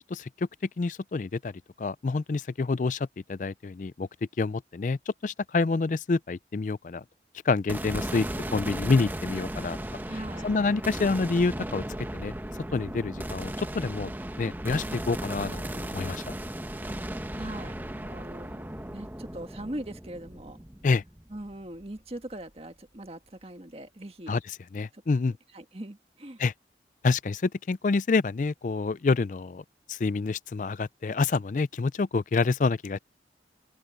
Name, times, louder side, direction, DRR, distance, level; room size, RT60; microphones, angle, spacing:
voice 1, 0.1-0.5 0.8-4.1 4.4-7.0 7.4-9.8 10.4-11.8 12.1-12.3 12.7-14.1 14.4-16.2 20.8-21.0 24.3-25.4 26.4-26.5 27.0-33.0, left 4 dB, 45° left, 0.4 m, -27 dB
sound 1, 7.7-22.0, right 1 dB, 10° right, 1.0 m, -36 dB
voice 2, 10.1-10.5 16.9-17.0 17.3-20.6 21.3-24.3 24.9-26.4, right 1 dB, 35° right, 1.7 m, -41 dB
head